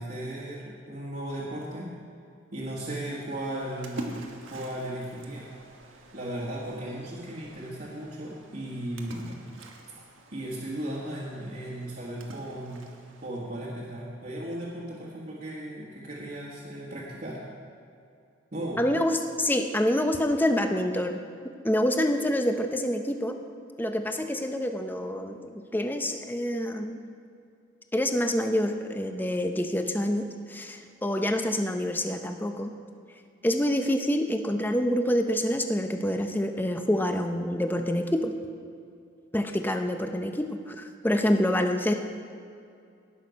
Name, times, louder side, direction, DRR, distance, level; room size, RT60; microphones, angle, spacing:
voice 1, 0.0-1.9 2.5-5.5 6.1-9.4 10.3-12.9 13.2-17.4 18.5-18.8, right 1 dB, 45° right, -6 dB, 1.6 m, -36 dB
Splash splatter, 3.3-13.3, right 1 dB, 85° right, 1.3 m, -47 dB
voice 2, 18.8-21.2 21.6-23.4 23.8-27.0 27.9-32.7 33.4-38.3 39.3-41.9, left 1 dB, 10° left, 6 dB, 0.6 m, -27 dB
17.5 x 6.4 x 5.2 m, 2.5 s
head